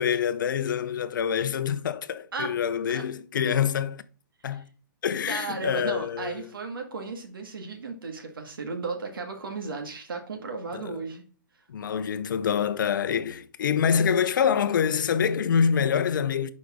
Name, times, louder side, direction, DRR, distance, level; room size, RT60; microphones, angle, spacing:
voice 1, 0.0-4.0 4.4-4.7 5.0-6.5 10.7-11.0 11.7-16.5, left 7 dB, 65° left, 0.7 m, -26 dB
voice 2, 5.3-11.2, right 3 dB, 90° right, 1.8 m, -35 dB
6.5 x 5.4 x 3.6 m
hypercardioid pair, 150°, 11 cm